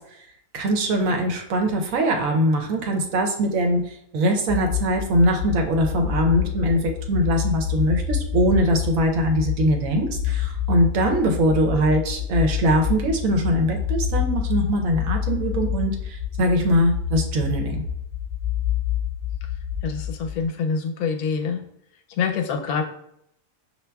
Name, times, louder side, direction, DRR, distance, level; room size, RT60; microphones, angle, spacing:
voice 1, 0.5-17.8, equal, 70° right, 3 dB, 1.0 m, -22 dB
sound 1, 4.5-20.5, left 9 dB, 25° right, 0.7 m, -27 dB
voice 2, 19.8-21.6 22.2-22.8, left 5 dB, 80° left, 4 dB, 1.1 m, -25 dB
6.6 x 2.6 x 2.2 m, 0.74 s
omnidirectional pair, 1.6 m